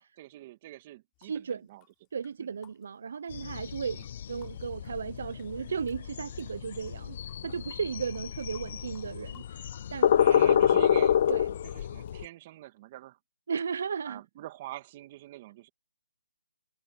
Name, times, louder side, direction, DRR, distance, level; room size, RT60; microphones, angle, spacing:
voice 1, 0.0-1.8 2.4-2.5 4.0-4.1 10.1-11.2 11.7-13.2 14.1-15.7, right 15 dB, 30° right, 2.4 m, -44 dB
sound 1, 1.1-6.0 6.3-12.1, left 24 dB, 20° left, 4.0 m, -62 dB
voice 2, 1.2-1.7 2.1-4.0 4.3-10.8 11.3-11.5 13.5-14.2, right 6 dB, 55° right, 0.7 m, -35 dB
sound 2, 3.3-12.2, left 9 dB, 40° left, 0.4 m, -27 dB
hypercardioid pair, 165°, 0 cm